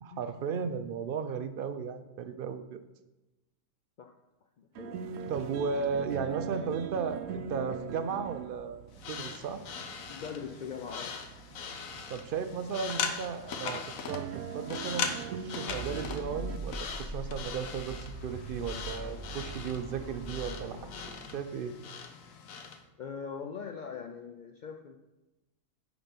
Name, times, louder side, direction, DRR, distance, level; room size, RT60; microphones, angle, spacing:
voice 1, 0.0-2.8 5.3-8.8 9.1-9.6 12.1-21.1 21.3-21.7, right 6 dB, 60° right, 9 dB, 0.6 m, -35 dB
voice 2, 4.6-5.0 10.1-11.2 23.0-25.0, left 6 dB, 70° left, 4 dB, 0.4 m, -41 dB
sound 1, 4.7-16.6, right 7 dB, 80° right, 0.9 m, -42 dB
sound 2, 8.9-22.8, left 6 dB, 85° left, 1.2 m, -40 dB
sound 3, 15.7-21.9, right 2 dB, 50° left, 3.0 m, -42 dB
10.0 x 4.0 x 5.2 m, 1.0 s
omnidirectional pair, 1.4 m